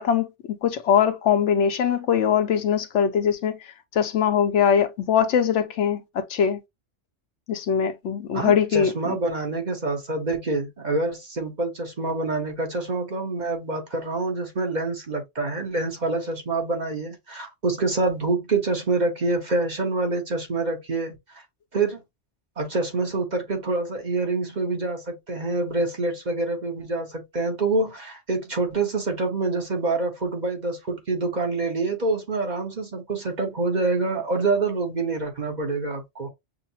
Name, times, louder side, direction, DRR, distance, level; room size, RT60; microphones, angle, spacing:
voice 1, 0.0-3.6 3.9-6.6 7.5-9.2, left 8 dB, 75° left, 1.0 m, -22 dB
voice 2, 8.3-21.1 21.7-22.0 22.6-36.3, right 3 dB, 40° right, 1.1 m, -26 dB
6.2 x 2.1 x 2.7 m
omnidirectional pair, 1.2 m